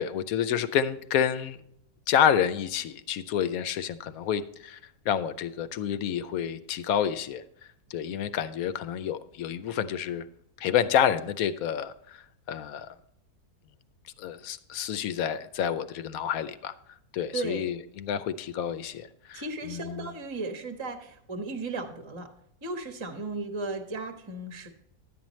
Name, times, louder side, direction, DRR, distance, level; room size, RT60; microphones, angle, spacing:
voice 1, 0.0-1.6 2.1-4.8 5.1-7.4 7.9-10.2 10.6-13.0 14.2-16.8 17.1-20.1, left 9 dB, 75° left, 12 dB, 1.0 m, -29 dB
voice 2, 17.3-17.7 19.3-22.3 22.6-24.7, right 2 dB, 20° right, 5 dB, 0.9 m, -35 dB
11.5 x 8.8 x 3.1 m, 0.74 s
omnidirectional pair, 1.6 m